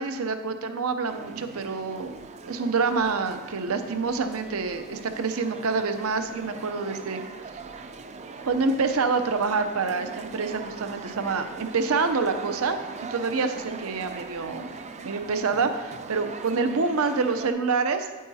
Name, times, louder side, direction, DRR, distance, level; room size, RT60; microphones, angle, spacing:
voice 1, 0.0-7.2 8.5-12.8 13.1-14.7 15.0-18.1, right 4 dB, 70° right, 8 dB, 0.7 m, -27 dB
sound 1, 1.0-17.5, right 4 dB, 30° right, 0.5 m, -41 dB
9.3 x 8.5 x 2.8 m, 1.3 s
head